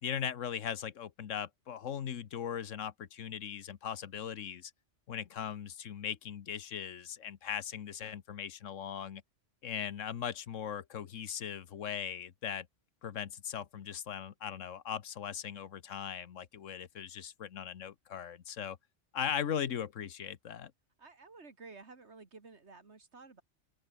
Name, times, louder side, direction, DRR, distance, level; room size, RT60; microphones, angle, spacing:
voice 1, 0.0-4.7 5.1-9.2 9.6-12.7 13.0-18.8 19.1-20.7, left 8 dB, 85° left, 1.4 m, -39 dB
voice 2, 21.0-23.4, right 4 dB, 65° right, 2.6 m, -53 dB
open air
omnidirectional pair, 1.3 m